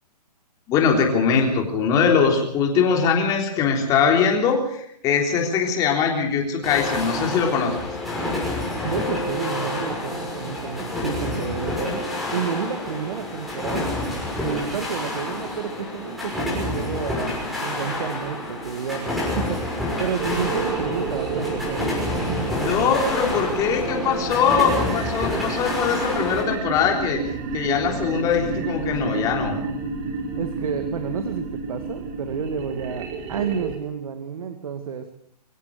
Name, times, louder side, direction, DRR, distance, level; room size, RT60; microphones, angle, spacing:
voice 1, 0.7-7.9 20.2-20.4 22.6-27.2 27.5-29.6, left 6 dB, 15° left, 2 dB, 3.6 m, -21 dB
sound 1, 6.6-26.4, left 2 dB, ahead, 5.9 m, -28 dB
voice 2, 8.8-13.9 14.4-21.9 22.3-22.5 30.4-35.1, right 7 dB, 55° right, 7 dB, 2.2 m, -30 dB
sound 2, 20.2-33.8, right 4 dB, 25° right, 3.4 m, -30 dB
24.0 x 17.0 x 6.7 m, 0.66 s
hypercardioid pair, 165°, 21 cm